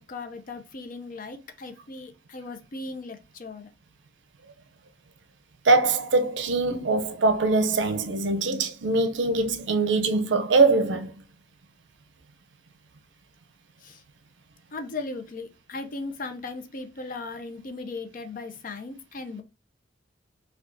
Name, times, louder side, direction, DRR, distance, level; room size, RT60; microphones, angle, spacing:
voice 1, 0.0-3.7 13.8-14.0 14.7-19.4, left 3 dB, 50° left, 0.5 m, -37 dB
voice 2, 5.6-11.1, right 3 dB, 70° right, 0.5 m, -22 dB
4.6 x 2.3 x 2.6 m
head